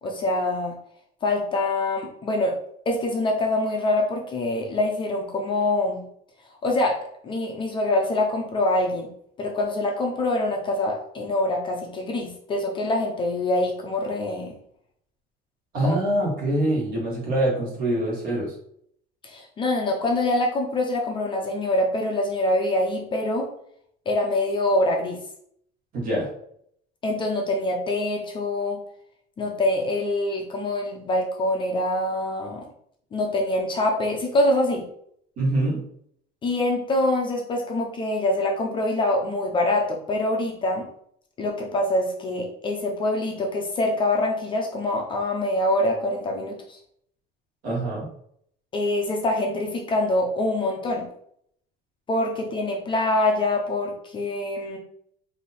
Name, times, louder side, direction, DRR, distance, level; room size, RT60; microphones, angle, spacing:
voice 1, 0.0-0.8 1.2-2.6 2.9-6.1 6.6-7.0 7.2-9.1 9.4-14.5 15.8-16.0 19.2-23.5 24.1-25.2 27.0-28.8 29.4-32.6 33.1-34.9 36.4-40.9 41.4-46.8 48.7-51.1 52.1-54.8, left 1 dB, 25° left, 1 dB, 0.6 m, -25 dB
voice 2, 15.7-18.5 25.9-26.3 35.4-35.8 47.6-48.1, right 1 dB, 45° right, -3 dB, 1.7 m, -24 dB
3.4 x 2.8 x 4.2 m, 0.68 s
cardioid pair, 170°, 21 cm